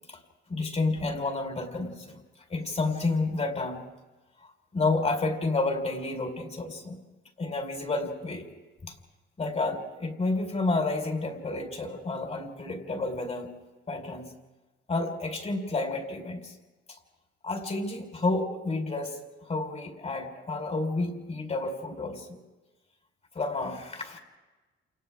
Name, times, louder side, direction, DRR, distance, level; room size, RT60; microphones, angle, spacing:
voice 1, 0.5-2.2 2.5-3.9 4.4-7.0 7.4-8.5 8.8-8.9 9.4-13.5 13.9-14.3 14.9-16.5 17.4-19.2 19.5-22.4 23.3-24.2, left 3 dB, 35° left, 3 dB, 4.8 m, -30 dB
29.5 x 28.5 x 3.7 m, 1.2 s
cardioid pair, 90°, 20 cm